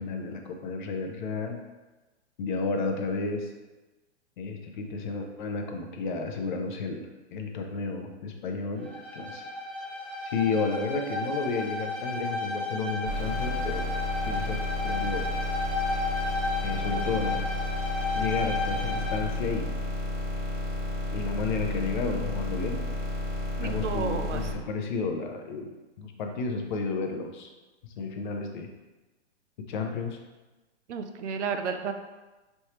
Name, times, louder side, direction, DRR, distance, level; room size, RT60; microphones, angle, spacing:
voice 1, 0.0-1.6 2.4-3.5 4.4-9.4 10.3-13.9 14.2-15.3 16.6-17.4 18.1-19.7 21.1-22.8 23.6-27.5 28.0-28.7 29.7-30.2, left 4 dB, 45° left, 3 dB, 0.6 m, -32 dB
Bowed string instrument, 8.8-19.3, left 2 dB, 5° left, 0.8 m, -33 dB
sound 1, 13.1-24.5, left 2 dB, 45° right, 1.2 m, -32 dB
voice 2, 23.6-24.5 30.9-31.9, right 6 dB, 85° right, 7 dB, 0.6 m, -32 dB
4.4 x 3.3 x 2.9 m, 1.1 s
hypercardioid pair, 145°, 35 cm